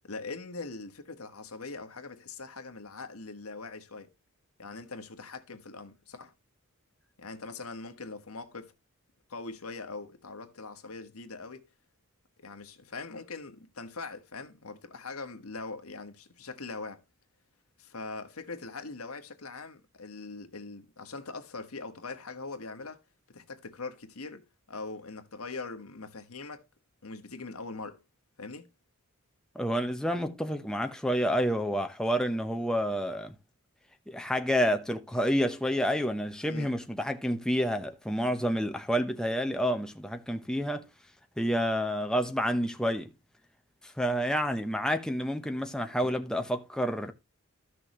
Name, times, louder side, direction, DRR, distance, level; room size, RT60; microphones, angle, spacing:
voice 1, 0.1-4.1 4.6-6.3 7.2-8.7 9.3-11.7 12.4-17.0 17.8-23.0 23.3-26.6 27.0-28.0 28.4-28.7 36.5-36.7, left 3 dB, 85° left, 1.5 m, -42 dB
voice 2, 29.5-33.3 34.1-40.9 41.4-43.1 43.8-47.1, equal, 5° left, 0.9 m, -29 dB
14.0 x 6.3 x 3.1 m
head